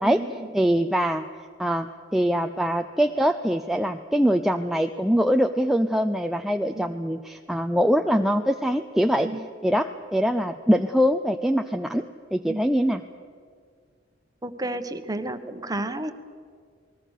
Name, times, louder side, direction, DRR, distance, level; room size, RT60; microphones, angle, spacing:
voice 1, 0.0-0.5 6.7-6.9 9.2-9.4 12.4-12.6 14.4-16.1, right 1 dB, 20° right, 9 dB, 1.2 m, -32 dB
voice 2, 0.5-1.3 1.6-9.3 9.6-12.0 12.3-13.0, equal, ahead, 5 dB, 0.5 m, -23 dB
28.0 x 20.0 x 6.6 m, 2.1 s
head